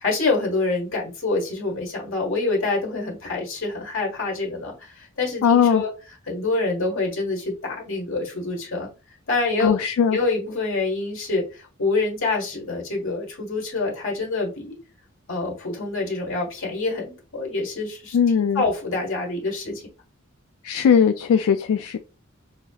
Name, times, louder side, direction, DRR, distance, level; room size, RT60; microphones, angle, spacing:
voice 1, 0.0-5.9 6.3-8.9 9.3-9.8 10.1-14.8 15.3-19.8, left 3 dB, 65° left, 1.5 m, -26 dB
voice 2, 5.4-5.8 9.6-10.2 18.1-18.6 20.6-22.0, left 7 dB, 85° left, 0.3 m, -19 dB
5.6 x 2.8 x 2.3 m
head